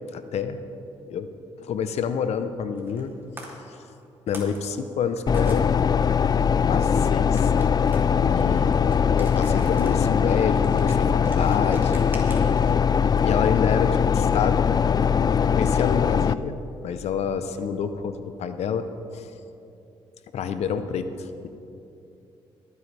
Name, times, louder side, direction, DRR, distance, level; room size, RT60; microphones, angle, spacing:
voice 1, 0.1-0.6 1.1-1.3 1.6-3.1 4.3-5.7 6.7-7.5 8.2-8.9 9.2-12.0 13.2-14.7 15.3-16.6 16.8-18.9 19.1-19.3 20.3-21.5, left 7 dB, 70° left, 10 dB, 0.8 m, -28 dB
sound 1, 2.8-3.1 3.4-3.5 4.0-5.6 7.3-12.7, right 1 dB, 20° right, 2.9 m, -45 dB
sound 2, 5.3-16.3, left 7 dB, 35° left, 0.3 m, -21 dB
22.0 x 9.4 x 3.4 m, 2.8 s
supercardioid pair, 60°, 11 cm